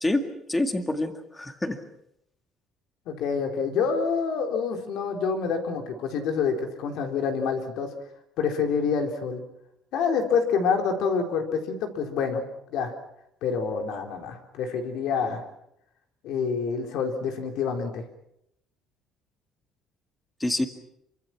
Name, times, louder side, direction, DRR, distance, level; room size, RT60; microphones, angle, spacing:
voice 1, 0.0-1.8 20.4-20.7, left 1 dB, 10° left, 7 dB, 1.9 m, -27 dB
voice 2, 3.1-7.9 8.4-9.4 9.9-12.4 12.7-12.9 13.4-15.4 16.2-18.0, left 5 dB, 65° left, 5 dB, 4.0 m, -27 dB
27.5 x 25.0 x 6.1 m, 0.78 s
cardioid pair, 170°, 0 cm